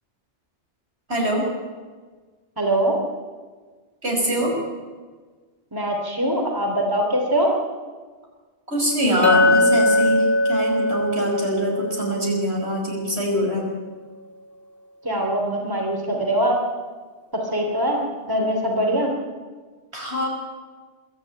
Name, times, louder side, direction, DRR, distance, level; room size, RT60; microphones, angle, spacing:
voice 1, 1.1-1.5 4.0-4.5 8.7-13.6 19.9-20.3, equal, 70° right, -1 dB, 5.9 m, -23 dB
voice 2, 2.6-3.0 5.7-7.5 15.0-16.6 17.3-19.1, right 1 dB, 20° right, 1 dB, 3.1 m, -22 dB
Chink clink, 9.2-13.5, left 1 dB, 60° left, 1.8 m, -21 dB
23.5 x 13.0 x 9.0 m, 1.4 s
omnidirectional pair, 1.1 m